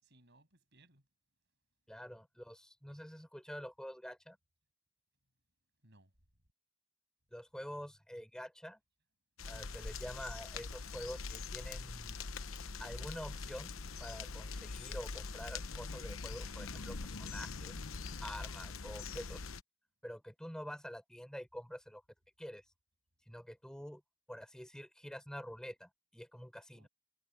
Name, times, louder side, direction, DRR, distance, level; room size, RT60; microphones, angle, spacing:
voice 1, 0.0-1.0 5.8-6.1 26.7-26.9, right 1 dB, 55° right, 7.6 m, -66 dB
voice 2, 1.9-4.4 7.3-8.8 9.5-12.3 12.8-17.7 18.2-19.5 20.0-22.0 22.4-22.6 23.3-24.0 24.3-26.9, equal, 5° left, 6.1 m, -47 dB
sound 1, 9.4-19.6, left 4 dB, 80° left, 1.0 m, -43 dB
head